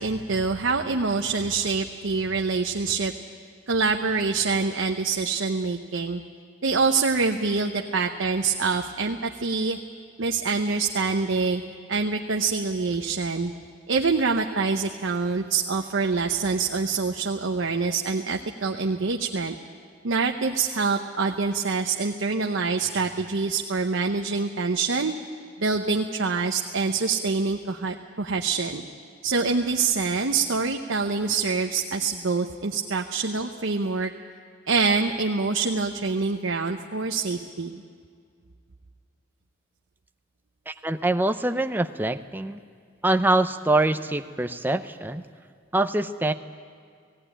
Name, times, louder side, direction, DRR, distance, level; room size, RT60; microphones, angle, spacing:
voice 1, 0.0-3.1 3.7-6.2 6.6-9.8 10.2-11.6 11.9-13.5 13.9-19.6 20.0-25.1 25.6-28.8 29.2-34.1 34.7-37.8, right 4 dB, 80° right, 3 dB, 0.8 m, -25 dB
voice 2, 40.7-42.6 43.0-45.2 45.7-46.3, right 2 dB, 10° right, 8 dB, 0.5 m, -24 dB
17.0 x 17.0 x 10.0 m, 2.1 s
head